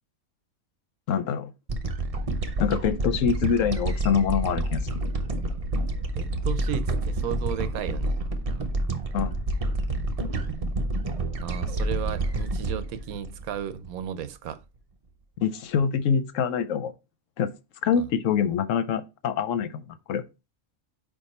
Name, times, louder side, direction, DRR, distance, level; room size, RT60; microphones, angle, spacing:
voice 1, 1.1-1.5 2.6-4.9 9.1-9.3 15.4-16.9 17.4-17.5 17.8-20.2, left 7 dB, 70° left, 0.9 m, -25 dB
sound 1, 1.7-14.2, right 2 dB, 40° right, 0.5 m, -28 dB
voice 2, 6.1-8.2 11.4-14.6 18.0-18.1, right 9 dB, 85° right, 1.1 m, -34 dB
5.3 x 4.8 x 4.1 m
omnidirectional pair, 1.5 m